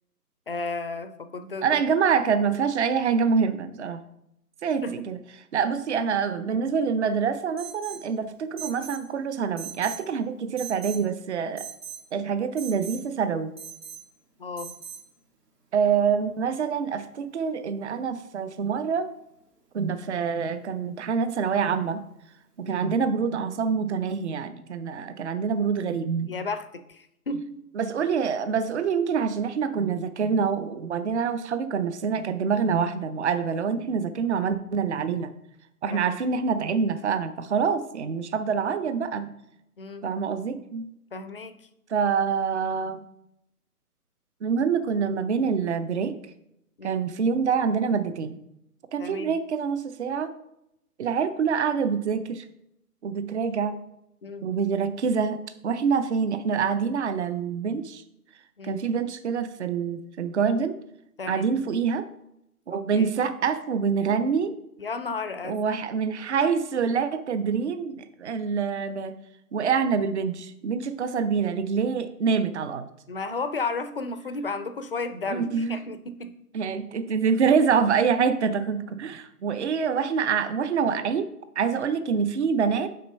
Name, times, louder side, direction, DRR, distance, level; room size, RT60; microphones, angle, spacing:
voice 1, 0.5-1.8 4.8-5.0 14.4-14.7 22.7-22.9 26.3-27.6 35.9-36.1 38.6-38.7 39.8-40.1 41.1-41.5 46.8-47.0 49.0-49.3 54.2-54.5 58.6-58.8 61.2-61.5 62.7-63.1 64.8-65.6 73.1-76.3, left 3 dB, 40° left, 10 dB, 0.5 m, -33 dB
voice 2, 1.6-4.0 4.6-5.2 5.5-11.7 12.1-13.5 15.7-19.1 19.7-22.0 22.7-26.3 27.8-35.3 35.8-39.3 40.0-40.9 41.9-43.0 44.4-46.2 46.8-48.4 48.9-50.3 51.0-52.5 53.0-53.8 54.4-58.0 58.6-60.8 61.3-62.1 62.7-64.6 65.4-69.2 69.5-72.9 75.3-75.8 76.5-82.9, right 6 dB, 45° right, 12 dB, 0.6 m, -26 dB
Alarm, 7.6-8.1 8.6-9.0 9.6-10.1 10.6-11.0 11.6-12.0 12.6-13.0 13.6-14.0 14.6-15.0, right 9 dB, 80° right, 2.3 m, -39 dB
6.6 x 4.3 x 5.4 m, 0.81 s
figure-of-eight pair, 140°, 47 cm